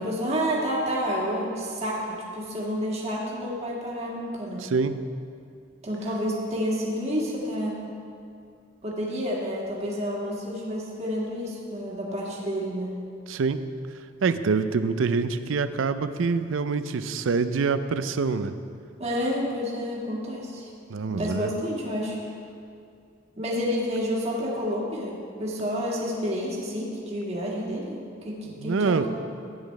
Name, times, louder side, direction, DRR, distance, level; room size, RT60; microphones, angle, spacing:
voice 1, 0.0-4.7 5.8-7.8 8.8-13.0 19.0-20.7 21.1-22.2 23.4-29.1, equal, 35° right, -4 dB, 1.7 m, -29 dB
voice 2, 4.6-5.0 13.3-13.6 14.2-18.5 20.9-21.5 28.6-29.1, right 4 dB, 75° right, 12 dB, 0.4 m, -25 dB
14.0 x 9.4 x 3.2 m, 2.4 s
head